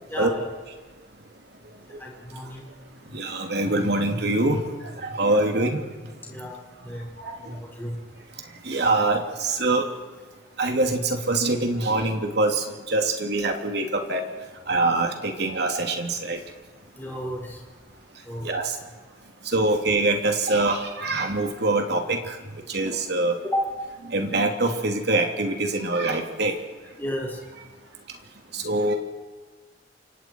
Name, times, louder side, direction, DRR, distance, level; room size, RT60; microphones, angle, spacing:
voice 1, 0.1-0.4 2.0-2.6 6.3-7.1 7.4-8.0 17.0-17.6 18.2-18.5 23.5-23.7 27.0-27.4, equal, 10° left, -2 dB, 5.5 m, -32 dB
voice 2, 3.1-4.6 5.1-5.8 7.2-7.3 8.7-9.8 10.6-14.2 14.7-16.4 18.4-18.7 19.5-22.3 22.7-23.3 24.1-26.5 28.5-29.0, right 2 dB, 60° right, 3 dB, 2.9 m, -24 dB
28.5 x 25.5 x 4.7 m, 1.4 s
head